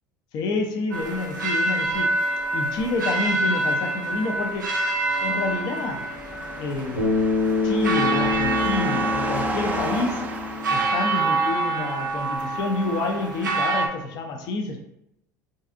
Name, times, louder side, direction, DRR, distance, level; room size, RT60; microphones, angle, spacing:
voice 1, 0.3-2.3 2.5-4.7 5.2-6.1 6.6-7.2 7.6-10.3 10.7-14.8, left 3 dB, 45° left, 3 dB, 0.4 m, -28 dB
sound 1, 0.9-13.9, right 2 dB, 80° right, 0.4 m, -27 dB
sound 2, 5.4-11.6, right 2 dB, 15° right, 0.4 m, -35 dB
Bass guitar, 7.0-11.3, left 4 dB, 75° left, 1.4 m, -26 dB
2.5 x 2.3 x 2.5 m, 0.80 s
figure-of-eight pair, 70°, 10 cm